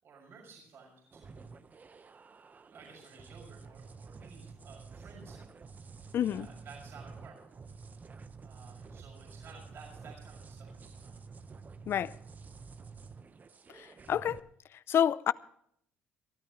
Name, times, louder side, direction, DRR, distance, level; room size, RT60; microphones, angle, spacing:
voice 1, 0.0-1.5 2.7-5.5 6.1-7.4 8.4-11.1, right 4 dB, 60° right, 6.2 m, -54 dB
sound 1, 1.1-14.4, right 4 dB, 35° right, 1.1 m, -50 dB
voice 2, 6.1-6.5 11.9-12.1 13.8-14.4 14.9-15.3, left 9 dB, 60° left, 0.6 m, -28 dB
23.0 x 13.0 x 3.1 m
supercardioid pair, 70°, 5 cm